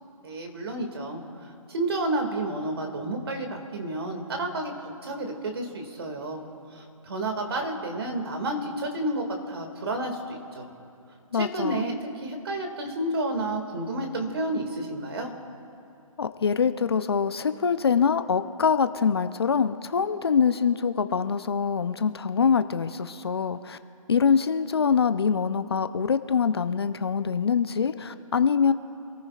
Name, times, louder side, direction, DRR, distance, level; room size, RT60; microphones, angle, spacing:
voice 1, 0.2-6.4 6.7-10.7 11.3-15.3, right 1 dB, 45° right, 3 dB, 2.1 m, -31 dB
voice 2, 11.3-11.9 16.2-23.8 24.1-28.7, left 6 dB, 45° left, 11 dB, 0.6 m, -24 dB
26.5 x 14.5 x 2.4 m, 2.6 s
hypercardioid pair, 165°, 18 cm